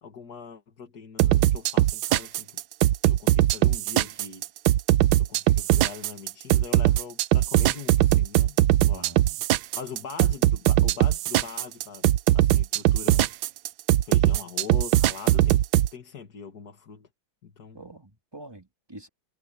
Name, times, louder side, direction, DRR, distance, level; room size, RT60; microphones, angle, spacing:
voice 1, 0.0-2.5 3.1-4.4 5.2-8.6 8.9-9.1 9.7-12.1 12.3-13.3 14.0-15.6 15.9-17.1 17.4-17.8, left 6 dB, 55° left, 2.4 m, -41 dB
sound 1, 1.2-15.9, right 14 dB, 85° right, 1.4 m, -20 dB
voice 2, 8.8-9.4 17.7-19.1, right 2 dB, 10° right, 2.8 m, -46 dB
omnidirectional pair, 2.1 m